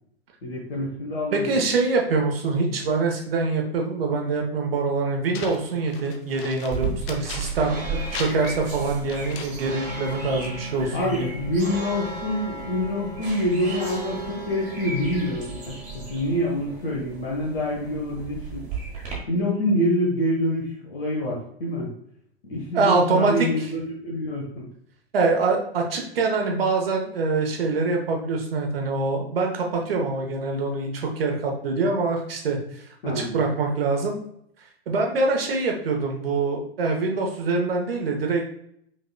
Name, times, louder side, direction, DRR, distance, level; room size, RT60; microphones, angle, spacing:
voice 1, 0.4-1.6 10.9-18.6 19.3-21.9 22.4-24.7 33.0-33.5, left 1 dB, 60° left, -4 dB, 1.1 m, -26 dB
voice 2, 1.3-11.3 22.7-23.3 25.1-32.6 33.1-34.2 34.9-38.5, right 3 dB, 60° right, 2 dB, 1.0 m, -24 dB
sound 1, 5.3-7.8 8.1-10.0, left 5 dB, 30° left, 0.5 m, -38 dB
sound 2, 6.7-19.1, right 3 dB, 25° right, 1.3 m, -34 dB
5.3 x 3.4 x 2.2 m, 0.71 s
figure-of-eight pair, 100°, 32 cm